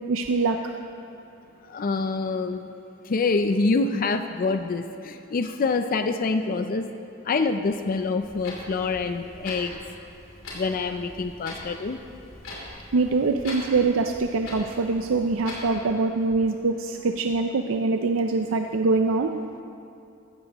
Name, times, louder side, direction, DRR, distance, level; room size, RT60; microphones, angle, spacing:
voice 1, 0.1-0.6 12.9-19.3, right 3 dB, 80° right, 5 dB, 0.5 m, -24 dB
voice 2, 1.7-2.6 3.1-6.9 7.3-9.8 10.5-12.0, left 3 dB, 45° left, 8 dB, 0.4 m, -26 dB
Clock, 8.2-15.8, left 1 dB, 80° left, 3.3 m, -41 dB
15.5 x 13.5 x 3.0 m, 2.6 s
head